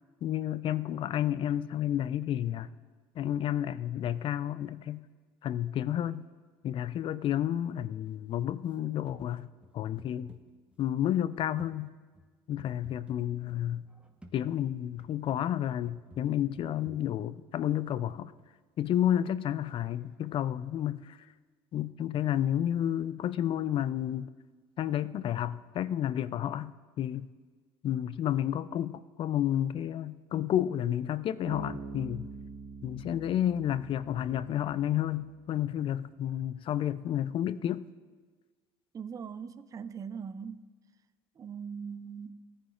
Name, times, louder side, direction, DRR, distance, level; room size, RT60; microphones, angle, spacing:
voice 1, 0.2-2.7 3.2-5.0 5.4-6.2 6.6-9.5 9.7-10.4 10.8-11.9 12.5-13.9 14.3-18.3 18.8-21.2 21.7-24.3 24.8-26.7 27.0-27.3 27.8-32.3 32.8-37.8, left 11 dB, 45° left, 16 dB, 0.4 m, -31 dB
sound 1, 8.1-8.7 9.1-9.3 9.6-10.9 11.6-15.4 15.8-18.5 19.8-19.9, equal, 10° right, 1.2 m, -56 dB
Bass guitar, 31.5-35.0, right 4 dB, 60° right, 1.4 m, -44 dB
voice 2, 38.9-40.7 41.4-42.4, right 6 dB, 30° right, 13 dB, 0.5 m, -41 dB
17.5 x 9.9 x 2.5 m, 1.4 s
hypercardioid pair, 75°, 12 cm